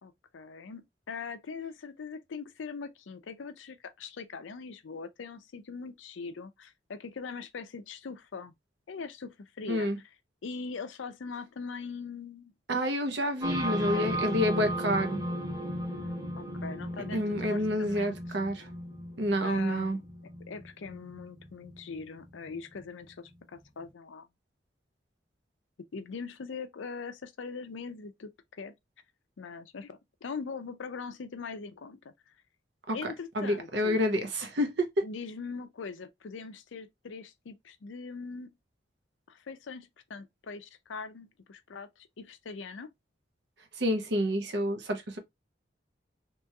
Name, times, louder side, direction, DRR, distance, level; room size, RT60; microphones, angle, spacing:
voice 1, 0.0-8.5 8.9-9.9 10.4-12.5 13.7-14.1 15.9-18.2 19.4-20.0 20.5-24.3 25.9-28.7 29.4-32.3 32.9-34.0 35.0-38.5 39.3-42.9, left 5 dB, 90° left, 0.5 m, -41 dB
voice 2, 12.7-15.2 17.1-18.7 19.2-20.0 32.9-33.0 33.4-35.0 43.8-45.2, equal, 65° right, 0.7 m, -28 dB
sound 1, 13.4-23.0, equal, 20° right, 0.8 m, -36 dB
3.0 x 2.9 x 2.2 m
head